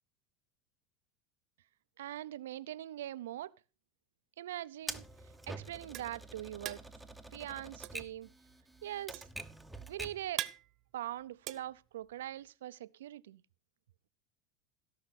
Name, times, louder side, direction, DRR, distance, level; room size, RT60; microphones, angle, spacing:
voice 1, 2.0-3.5 4.4-5.0 5.5-6.8 7.3-8.3 8.8-9.2 9.9-10.5 10.9-13.4, right 13 dB, 85° right, 0.6 m, -42 dB
Typewriter, 4.9-10.3, right 2 dB, 5° right, 1.1 m, -47 dB
sound 1, 5.3-12.5, right 13 dB, 45° right, 1.1 m, -44 dB
16.5 x 5.8 x 6.0 m
hypercardioid pair, 105°, 0 cm